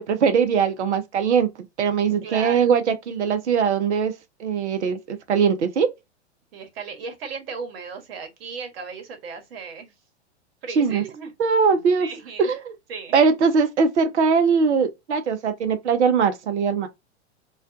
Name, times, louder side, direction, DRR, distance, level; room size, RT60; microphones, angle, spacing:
voice 1, 0.0-1.5 1.8-4.1 4.4-5.9 10.8-11.0 11.4-12.1 12.4-12.7 13.1-16.9, right 6 dB, 75° right, 0.6 m, -21 dB
voice 2, 2.2-2.7 6.5-9.9 10.6-11.3 12.0-12.5 12.9-13.1, right 5 dB, 55° right, 1.1 m, -36 dB
2.4 x 2.2 x 2.4 m
figure-of-eight pair, 100°, 35 cm